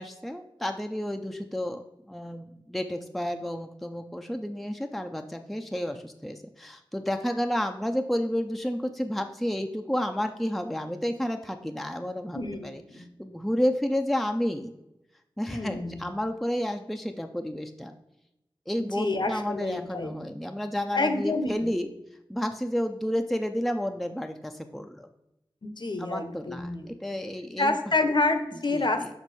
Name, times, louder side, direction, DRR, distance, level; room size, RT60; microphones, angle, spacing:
voice 1, 0.0-14.7 15.4-17.9 18.7-21.9 22.3-25.1 26.0-27.8 28.7-29.1, equal, ahead, 6 dB, 0.4 m, -31 dB
voice 2, 12.3-13.0 15.5-16.1 19.0-20.2 20.9-21.5 25.6-26.9 27.6-29.1, left 2 dB, 55° left, 7 dB, 0.8 m, -28 dB
6.3 x 4.4 x 4.1 m, 0.87 s
wide cardioid pair, 55°, 9 cm